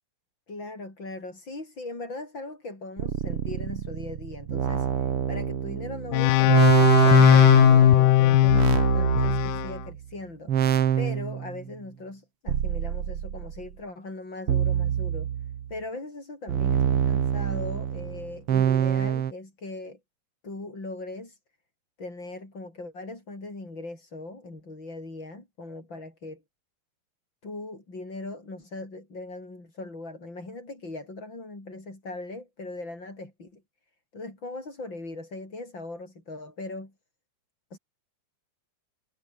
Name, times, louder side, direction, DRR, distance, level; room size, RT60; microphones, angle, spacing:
voice 1, 0.5-15.3 15.7-20.0 20.4-21.4 22.0-26.4 27.4-33.6 34.1-36.9 37.7-37.8, left 2 dB, 30° left, 8.0 m, -39 dB
sound 1, 3.0-10.0 10.5-11.6 12.5-13.6 14.5-15.7 16.5-19.3, right 9 dB, 55° right, 1.7 m, -25 dB
sound 2, 6.1-9.7, left 17 dB, 90° left, 2.9 m, -18 dB
omnidirectional pair, 4.4 m